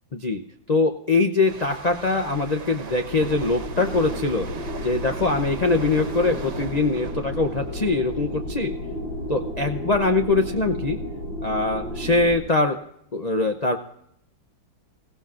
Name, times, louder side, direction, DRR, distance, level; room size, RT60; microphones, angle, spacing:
voice 1, 0.1-0.4 0.7-4.5 4.8-8.7 9.3-11.0 11.4-12.8 13.1-13.8, left 3 dB, 50° left, 5 dB, 0.4 m, -23 dB
sound 1, 1.4-8.9 9.2-9.5, right 5 dB, 65° right, 1.7 m, -40 dB
sound 2, 3.0-12.4, left 1 dB, 85° left, 4.7 m, -32 dB
27.0 x 16.0 x 2.5 m, 0.72 s
omnidirectional pair, 2.0 m